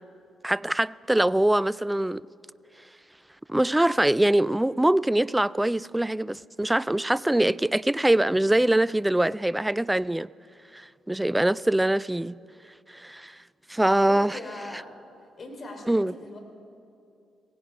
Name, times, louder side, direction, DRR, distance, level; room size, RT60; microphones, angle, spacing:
voice 1, 0.4-2.2 3.5-10.3 10.7-12.4 12.9-13.4 13.7-14.4 15.9-16.1, right 1 dB, 10° right, 0.3 m, -23 dB
voice 2, 14.0-14.9 15.4-16.4, left 2 dB, 45° left, 3.1 m, -40 dB
17.0 x 16.0 x 5.3 m
hypercardioid pair, 40°, 0 cm